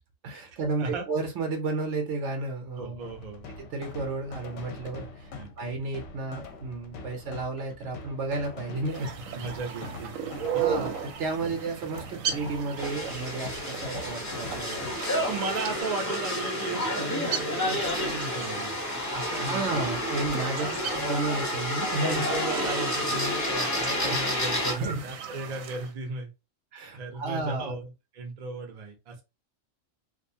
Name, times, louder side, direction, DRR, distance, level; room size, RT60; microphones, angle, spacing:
voice 1, 0.2-3.1 3.6-9.1 10.5-15.2 19.4-22.3 24.0-24.2 24.6-25.0 26.7-27.8, right 3 dB, 65° right, 4 dB, 0.9 m, -32 dB
voice 2, 2.8-3.5 5.3-5.5 9.0-9.1 9.3-10.6 15.3-18.8 19.1-19.8 20.6-20.8 22.0-26.3 26.9-29.2, right 3 dB, 40° right, 3 dB, 0.6 m, -36 dB
sound 1, 3.0-15.8, left 4 dB, 70° left, 0.8 m, -43 dB
sound 2, 8.9-25.9, right 7 dB, 85° right, 1.0 m, -37 dB
sound 3, 12.8-24.7, left 1 dB, 15° left, 0.7 m, -30 dB
2.6 x 2.3 x 2.6 m, 0.26 s
omnidirectional pair, 1.4 m